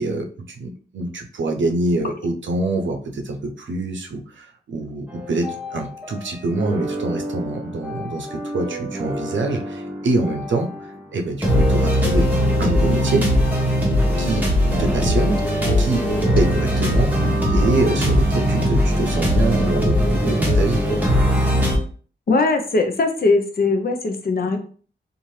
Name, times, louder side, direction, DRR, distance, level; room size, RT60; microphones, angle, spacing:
voice 1, 0.0-12.3 12.6-13.3 14.2-14.5 14.8-15.4 15.8-16.1 16.3-21.0, right 2 dB, 75° right, 4 dB, 0.6 m, -25 dB
sound 1, 5.1-6.2 6.5-10.9 11.4-21.8, equal, 10° right, 1.0 m, -21 dB
voice 2, 22.3-24.6, left 3 dB, 50° left, 5 dB, 0.6 m, -20 dB
2.7 x 2.5 x 3.1 m, 0.42 s
wide cardioid pair, 75°, 20 cm